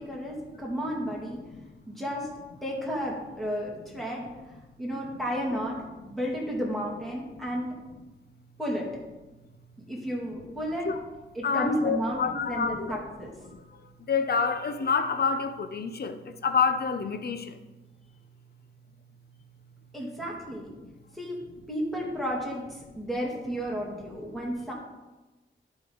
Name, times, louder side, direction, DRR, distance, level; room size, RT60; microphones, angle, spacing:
voice 1, 0.0-1.4 1.9-2.3 2.6-4.3 4.8-5.8 6.0-7.7 8.6-8.9 9.9-10.9 11.3-13.3 19.9-20.7 21.1-21.4 21.7-24.7, equal, ahead, -3 dB, 2.2 m, -32 dB
voice 2, 11.4-13.0 13.5-13.6 14.1-17.6, left 5 dB, 50° left, 9 dB, 0.7 m, -27 dB
14.5 x 5.3 x 3.9 m, 1.2 s
wide cardioid pair, 155°, 21 cm